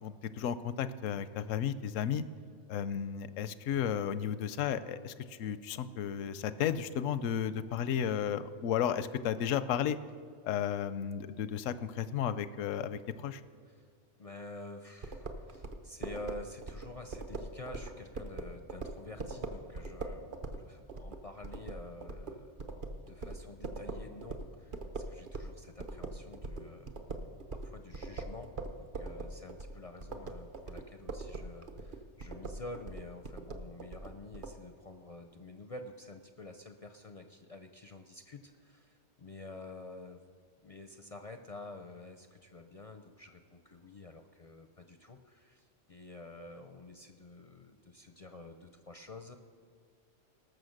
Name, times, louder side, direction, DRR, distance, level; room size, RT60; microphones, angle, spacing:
voice 1, 0.0-2.2 2.7-10.0 10.4-13.4, left 9 dB, 85° left, 14 dB, 1.0 m, -33 dB
voice 2, 14.2-22.5 23.1-26.9 27.5-40.2 40.6-49.4, left 2 dB, 45° left, 6 dB, 0.4 m, -49 dB
sound 1, 15.0-25.5 25.8-34.5, right 3 dB, 45° right, 0.9 m, -41 dB
18.5 x 6.8 x 6.5 m, 2.1 s
omnidirectional pair, 1.3 m